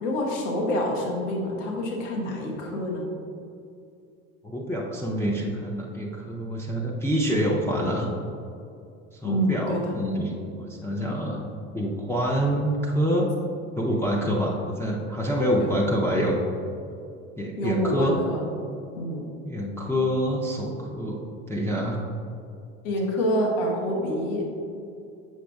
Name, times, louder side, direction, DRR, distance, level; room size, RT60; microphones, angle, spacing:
voice 1, 0.0-3.1 9.2-10.0 15.6-15.7 17.6-18.5 19.0-19.3 22.8-24.5, equal, 60° left, 0 dB, 1.3 m, -27 dB
voice 2, 4.4-8.1 9.1-11.5 11.7-13.3 13.8-16.4 17.4-18.2 19.4-22.0, equal, 5° left, -4 dB, 0.6 m, -26 dB
7.7 x 6.0 x 2.3 m, 2.5 s
figure-of-eight pair, 70°, 41 cm